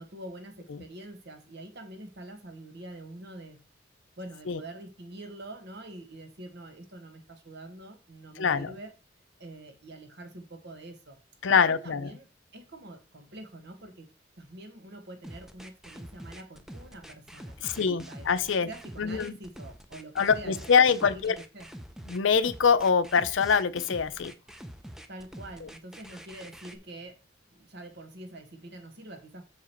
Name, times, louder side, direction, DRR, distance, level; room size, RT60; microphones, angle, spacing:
voice 1, 0.0-3.6 4.2-8.9 9.4-11.2 11.5-14.1 14.4-21.7 25.1-27.2 27.5-29.4, right 1 dB, 60° right, 1.4 m, -45 dB
voice 2, 8.4-8.7 11.4-12.0 17.6-18.7 19.0-19.3 20.2-21.4 22.1-24.3 25.6-25.7, left 6 dB, 75° left, 0.6 m, -24 dB
sound 1, 15.2-26.8, equal, 5° right, 0.5 m, -45 dB
6.1 x 4.8 x 4.4 m
head